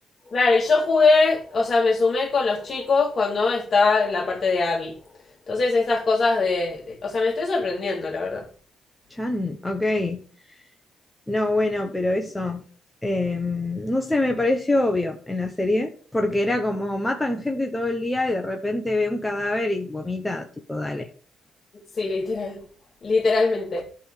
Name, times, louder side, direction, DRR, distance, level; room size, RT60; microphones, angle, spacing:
voice 1, 0.3-4.9 5.5-8.5 22.0-22.6 23.0-23.8, left 3 dB, 40° left, 2.4 m, -22 dB
voice 2, 9.1-10.2 11.3-12.6 13.0-21.1, left 2 dB, 10° left, 1.1 m, -25 dB
11.0 x 3.7 x 6.5 m
cardioid pair, 90°, 0 cm